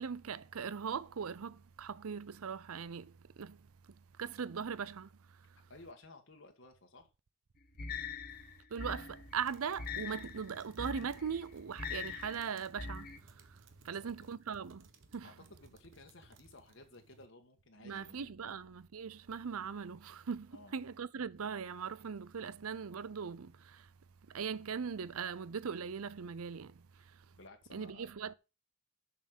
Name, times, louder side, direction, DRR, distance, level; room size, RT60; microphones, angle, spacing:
voice 1, 0.0-5.6 8.7-15.3 17.8-23.9 24.3-27.3 27.7-28.3, right 6 dB, 80° right, 0.6 m, -40 dB
voice 2, 5.7-7.1 13.8-14.1 15.2-18.6 20.5-20.7 27.4-28.1, left 2 dB, 60° left, 1.5 m, -56 dB
sound 1, 7.8-13.2, left 5 dB, 40° left, 1.0 m, -43 dB
sound 2, 9.3-17.3, right 3 dB, 60° right, 1.2 m, -62 dB
7.1 x 6.5 x 5.1 m
head